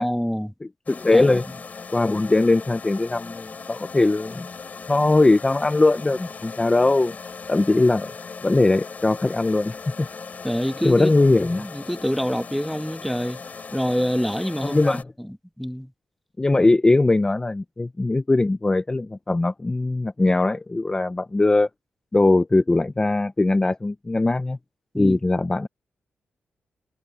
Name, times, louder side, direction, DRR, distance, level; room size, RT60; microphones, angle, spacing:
voice 1, 0.0-0.5 1.1-1.4 10.4-11.1 11.6-13.4 13.7-15.0 15.6-15.9 24.9-25.2, equal, ahead, 1.3 m, -26 dB
voice 2, 0.6-1.4 1.9-4.5 4.9-7.2 7.5-8.1 8.4-10.1 10.8-11.7 14.6-15.1 16.4-21.7 22.1-24.6 25.0-25.7, left 2 dB, 20° left, 0.8 m, -20 dB
sound 1, 0.9-15.0, left 5 dB, 45° left, 4.4 m, -38 dB
cardioid pair, 95°, 4 cm